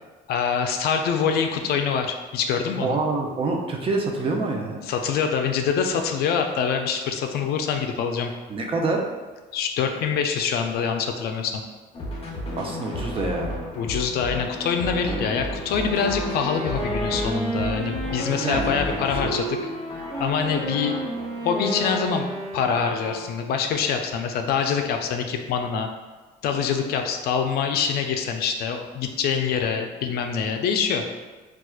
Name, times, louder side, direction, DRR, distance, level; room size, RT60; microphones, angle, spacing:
voice 1, 0.3-3.0 4.8-8.3 9.5-11.6 13.7-19.5 20.2-20.9 21.4-22.2 22.5-25.9 26.4-31.1, left 6 dB, 70° left, 4 dB, 0.4 m, -25 dB
voice 2, 2.8-4.8 8.5-9.0 12.6-13.5 15.0-15.2 18.4-18.8 19.2-19.3, right 3 dB, 30° right, 1 dB, 0.5 m, -26 dB
sound 1, 11.9-22.1, left 1 dB, 35° left, 0.7 m, -34 dB
Wind instrument woodwind instrument, 15.7-23.6, right 1 dB, 5° right, 0.8 m, -32 dB
4.3 x 2.3 x 2.3 m, 1.3 s
cardioid pair, 110°, 17 cm